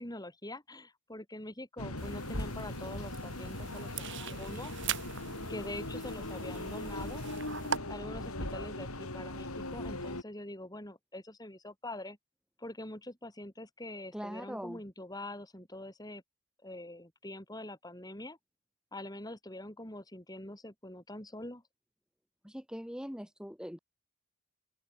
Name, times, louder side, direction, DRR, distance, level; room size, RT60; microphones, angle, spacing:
voice 1, 0.0-4.7 5.5-7.2 7.9-12.2 12.6-16.2 16.6-18.4 18.9-21.6, left 1 dB, 15° left, 5.1 m, -44 dB
sound 1, 1.8-10.2, left 1 dB, 80° left, 6.0 m, -39 dB
sound 2, 2.0-7.8, right 7 dB, 55° right, 4.2 m, -41 dB
voice 2, 14.1-14.8 22.4-23.8, equal, 5° right, 2.2 m, -41 dB
open air
head